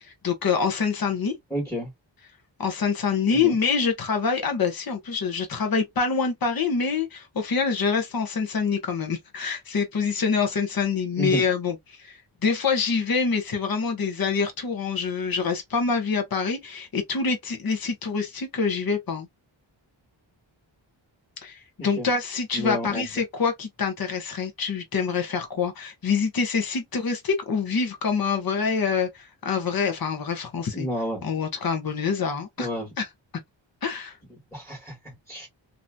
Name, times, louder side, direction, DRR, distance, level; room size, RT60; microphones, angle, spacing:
voice 1, 0.0-1.3 2.6-19.3 21.4-30.9 31.2-32.7 33.0-33.1 33.8-34.2, left 5 dB, 50° left, 1.0 m, -26 dB
voice 2, 1.5-1.9 3.3-3.5 11.2-11.4 21.8-22.1 22.5-23.1 30.7-31.2 32.6-32.9 34.3-35.5, equal, 5° left, 1.4 m, -31 dB
2.9 x 2.7 x 2.2 m
wide cardioid pair, 95°, 47 cm